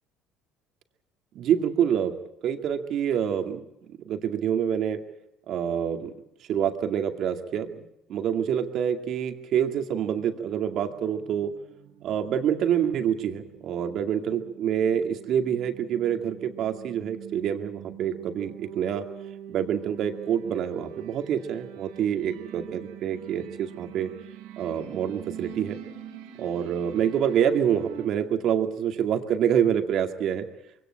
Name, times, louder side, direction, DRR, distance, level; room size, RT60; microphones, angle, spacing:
voice 1, 1.4-2.2 2.4-3.6 4.0-5.0 5.5-6.1 6.5-7.8 8.1-11.5 12.0-19.1 19.5-24.1 24.6-25.8 26.4-30.5, right 9 dB, 60° right, 6 dB, 2.2 m, -26 dB
sound 1, 10.1-28.1, right 10 dB, 85° right, 2.6 m, -45 dB
23.0 x 17.5 x 8.9 m, 0.82 s
supercardioid pair, 80°, 0 cm